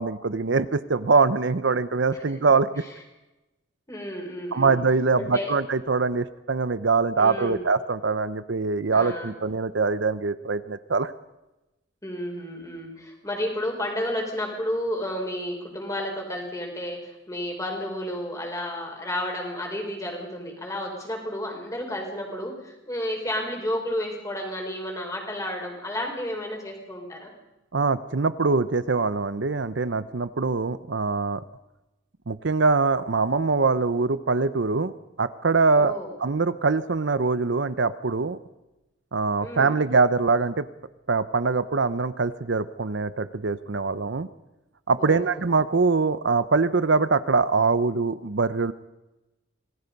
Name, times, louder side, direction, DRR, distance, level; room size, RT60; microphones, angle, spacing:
voice 1, 0.0-2.8 4.5-11.1 27.7-31.4 32.3-34.9 35.2-35.9 36.2-38.4 39.1-40.7 41.1-44.3 44.9-48.7, right 4 dB, 65° right, 13 dB, 0.7 m, -23 dB
voice 2, 3.9-4.8 5.1-5.5 7.2-7.6 8.9-9.3 12.0-27.3 35.7-36.1 39.4-39.8 45.0-45.4, left 1 dB, 15° left, 1 dB, 4.8 m, -32 dB
26.0 x 19.0 x 5.4 m, 1.0 s
head